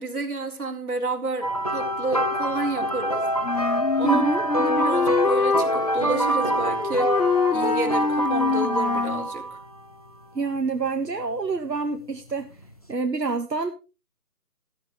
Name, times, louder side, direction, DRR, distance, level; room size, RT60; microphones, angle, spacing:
voice 1, 0.0-3.2 4.0-4.3 4.6-7.1 7.5-9.6, right 3 dB, 65° right, 3.8 m, -30 dB
sound 1, 1.4-9.7 10.6-10.8 12.6-12.7, right 1 dB, 25° left, 0.8 m, -25 dB
Wind instrument woodwind instrument, 3.4-9.3, left 5 dB, 70° left, 1.4 m, -25 dB
voice 2, 4.0-4.4 10.3-12.5 12.9-13.7, right 4 dB, 90° right, 1.6 m, -27 dB
14.0 x 13.5 x 3.1 m
figure-of-eight pair, 165°, 48 cm